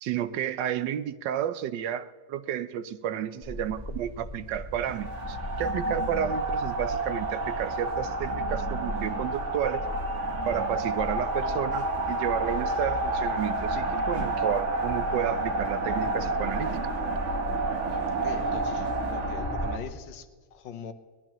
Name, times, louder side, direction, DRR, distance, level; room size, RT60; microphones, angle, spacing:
voice 1, 0.0-9.8 10.5-16.7, right 10 dB, 85° right, 1.4 m, -31 dB
sound 1, 3.4-19.8, left 1 dB, 15° left, 5.0 m, -38 dB
sound 2, 4.8-19.8, right 2 dB, 45° right, 1.6 m, -30 dB
voice 2, 18.1-20.9, left 7 dB, 85° left, 1.7 m, -42 dB
23.0 x 18.0 x 3.1 m
omnidirectional pair, 1.9 m